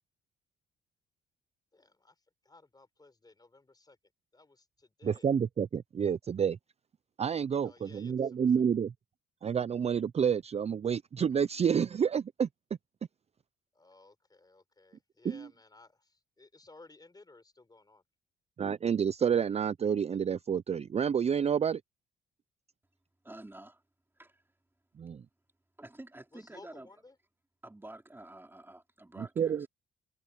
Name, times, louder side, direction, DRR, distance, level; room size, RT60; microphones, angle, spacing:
voice 1, 1.7-4.0 4.3-5.3 7.6-8.5 13.7-18.0 26.3-27.2, left 3 dB, 20° left, 4.5 m, -58 dB
voice 2, 5.0-6.6 7.2-8.9 9.4-12.5 15.2-15.5 18.6-21.8 25.0-25.2 29.2-29.7, right 7 dB, 35° right, 0.5 m, -29 dB
voice 3, 23.2-23.8 24.2-24.4 25.8-26.9 27.6-29.7, right 1 dB, 10° right, 4.0 m, -49 dB
cardioid pair, 90°, 20 cm